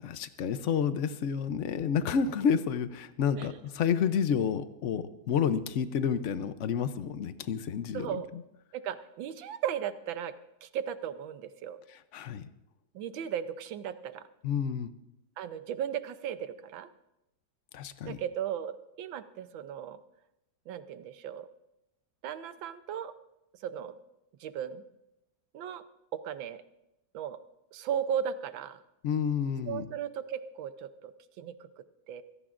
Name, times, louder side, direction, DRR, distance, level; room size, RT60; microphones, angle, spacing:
voice 1, 0.0-8.4 12.1-12.5 14.4-14.9 17.7-18.2 29.0-29.9, left 7 dB, 65° left, 12 dB, 0.7 m, -30 dB
voice 2, 7.9-8.3 8.7-10.3 10.6-11.8 12.9-14.2 15.4-16.9 18.0-20.0 20.7-21.5 22.2-23.1 23.6-23.9 24.4-24.8 25.5-25.8 26.1-26.6 27.1-27.4 27.7-28.8 29.7-31.1 31.4-32.2, right 9 dB, 85° right, 11 dB, 1.5 m, -36 dB
24.0 x 16.5 x 2.5 m, 0.89 s
omnidirectional pair, 2.1 m